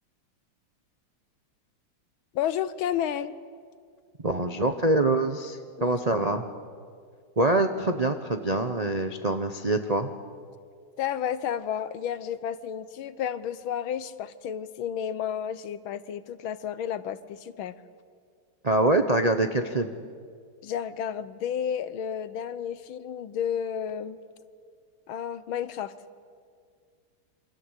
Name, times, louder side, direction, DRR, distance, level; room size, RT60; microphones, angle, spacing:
voice 1, 2.3-3.4 5.8-6.3 11.0-17.8 20.6-24.2 25.1-25.9, left 9 dB, 75° left, 14 dB, 1.7 m, -31 dB
voice 2, 4.2-6.4 7.4-10.1 18.6-19.9, right 2 dB, 40° right, 6 dB, 0.5 m, -25 dB
28.0 x 24.5 x 8.2 m, 2.1 s
omnidirectional pair, 2.3 m